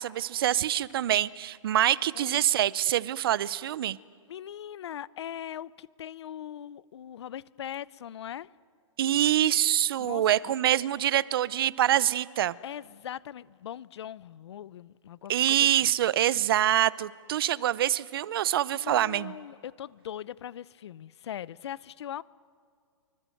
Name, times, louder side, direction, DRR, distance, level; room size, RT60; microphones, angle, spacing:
voice 1, 0.0-4.0 9.0-12.6 15.3-19.3, right 12 dB, 45° right, 0.8 m, -25 dB
voice 2, 2.1-2.5 4.3-8.5 10.0-10.2 12.6-15.9 18.7-22.2, left 10 dB, 55° left, 0.8 m, -40 dB
26.5 x 24.5 x 7.8 m
hypercardioid pair, 165°, 17 cm